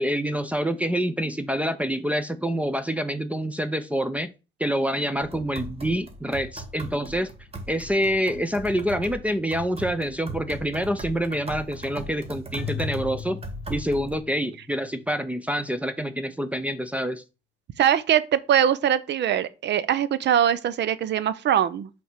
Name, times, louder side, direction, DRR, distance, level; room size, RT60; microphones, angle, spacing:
voice 1, 0.0-4.3 4.6-7.3 7.7-13.4 13.7-17.2, equal, 5° right, 0.6 m, -27 dB
sound 1, 5.2-14.2, right 2 dB, 30° right, 1.3 m, -38 dB
Keyboard (musical), 12.6-14.8, left 10 dB, 60° left, 0.6 m, -37 dB
voice 2, 17.8-21.9, right 9 dB, 60° right, 0.7 m, -22 dB
5.5 x 3.5 x 5.7 m
cardioid pair, 90°, 20 cm